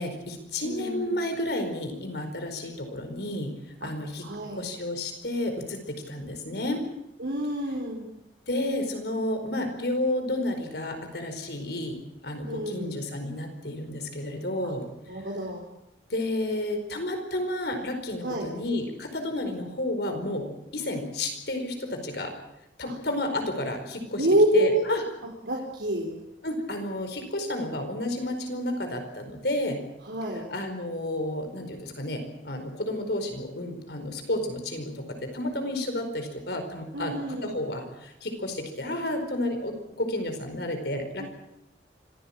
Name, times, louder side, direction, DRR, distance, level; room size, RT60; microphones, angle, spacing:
voice 1, 0.0-3.5 3.8-4.3 4.5-6.8 8.5-14.9 16.1-22.3 22.8-24.3 24.5-25.0 26.4-29.8 30.5-41.3, left 1 dB, 65° left, 6 dB, 4.8 m, -31 dB
voice 2, 0.6-1.1 3.8-3.9 4.2-4.7 7.2-8.1 12.5-13.0 14.6-14.7 15.1-15.7 18.2-18.5 22.9-23.0 24.2-24.8 25.5-26.2 30.0-30.4 36.9-37.6 41.2-41.3, right 1 dB, 80° right, -2 dB, 4.0 m, -27 dB
25.5 x 16.5 x 8.8 m, 0.85 s
head